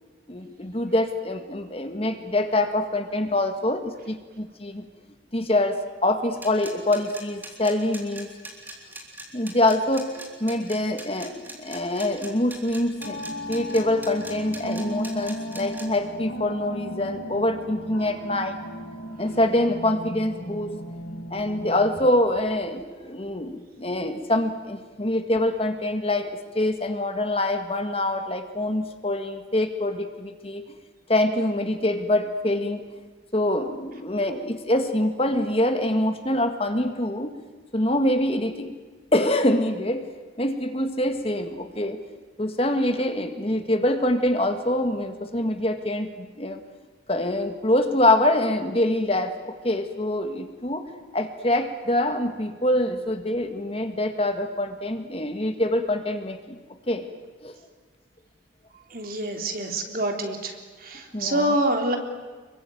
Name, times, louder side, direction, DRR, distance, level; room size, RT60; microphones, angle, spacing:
voice 1, 0.3-4.9 5.3-8.3 9.3-13.2 13.5-18.6 19.2-20.8 21.3-30.7 31.1-32.8 33.3-37.3 37.7-38.8 39.1-40.1 40.4-42.0 42.4-46.6 47.1-56.6 56.9-57.1 57.4-57.5 61.1-61.5, left 1 dB, 30° left, 7 dB, 1.8 m, -25 dB
sound 1, 6.4-15.8, right 1 dB, 10° right, 3.7 m, -40 dB
sound 2, 13.0-22.1, equal, 90° left, 6.2 m, -36 dB
voice 2, 58.9-60.5 60.8-62.0, right 1 dB, 50° right, 4 dB, 3.4 m, -26 dB
27.0 x 23.0 x 9.3 m, 1.3 s
head